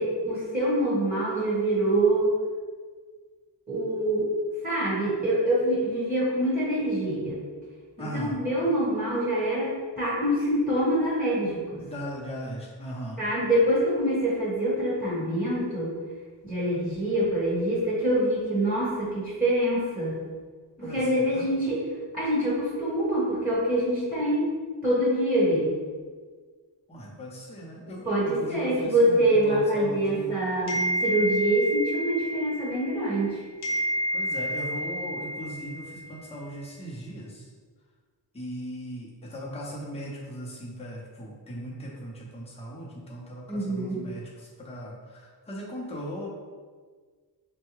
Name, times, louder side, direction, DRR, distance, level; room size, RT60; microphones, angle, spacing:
voice 1, 0.0-2.3 3.7-4.3 4.6-7.4 8.0-11.8 13.2-15.9 16.4-20.1 20.8-21.8 22.1-24.5 24.8-25.7 28.0-33.4 43.5-44.0, right 1 dB, 20° right, -9 dB, 1.4 m, -25 dB
voice 2, 8.0-8.4 11.8-13.2 20.8-21.4 26.9-30.4 34.1-37.5 38.3-46.3, equal, 15° left, -5 dB, 0.7 m, -38 dB
sound 1, 30.7-33.3 33.6-36.2, right 1 dB, 65° left, 0.9 m, -30 dB
4.4 x 2.3 x 3.1 m, 1.5 s
wide cardioid pair, 130°, 43 cm